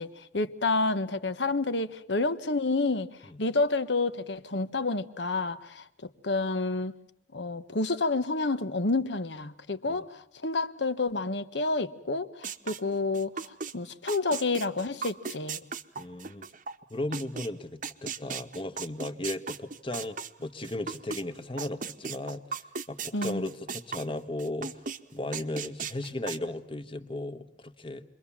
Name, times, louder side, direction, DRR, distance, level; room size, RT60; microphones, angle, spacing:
voice 1, 0.0-3.1 3.4-5.8 6.2-6.9 7.3-15.6 23.1-23.5, left 3 dB, 75° left, 12 dB, 1.2 m, -29 dB
sound 1, 12.4-13.7 14.1-17.5 17.8-21.2 21.6-24.1 24.4-25.0 25.3-26.4, right 5 dB, 45° right, 1.0 m, -36 dB
voice 2, 16.0-16.5 16.9-22.5 22.9-24.7 25.1-28.0, left 1 dB, 30° left, 9 dB, 1.3 m, -36 dB
29.0 x 23.0 x 7.3 m, 0.72 s
head